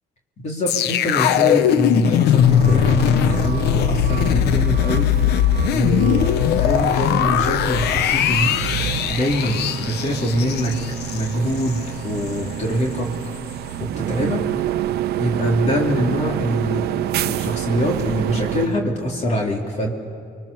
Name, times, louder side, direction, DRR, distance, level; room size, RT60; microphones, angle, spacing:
voice 1, 0.4-5.1 5.7-8.5 9.1-10.8 11.1-13.1 13.8-14.4 15.2-16.9 17.1-19.9, equal, 40° left, 0 dB, 3.5 m, -23 dB
sound 1, 0.7-11.8 12.2-12.3, left 10 dB, 75° left, 0.9 m, -20 dB
sound 2, 2.4-18.7, right 12 dB, 70° right, 0.8 m, -28 dB
30.0 x 23.5 x 6.9 m, 2.3 s
cardioid pair, 110°, 17 cm